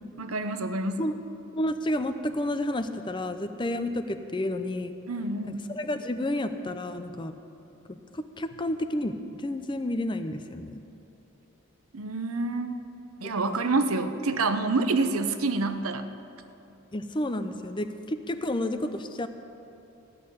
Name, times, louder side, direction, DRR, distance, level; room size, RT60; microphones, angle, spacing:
voice 1, 0.2-1.1 5.1-5.7 11.9-12.8 13.2-16.0, right 3 dB, 90° right, 9 dB, 0.8 m, -27 dB
voice 2, 1.5-4.9 5.7-7.3 7.9-10.8 13.2-13.6 16.9-19.3, left 1 dB, 20° left, 9 dB, 0.5 m, -31 dB
15.0 x 6.5 x 9.6 m, 2.8 s
head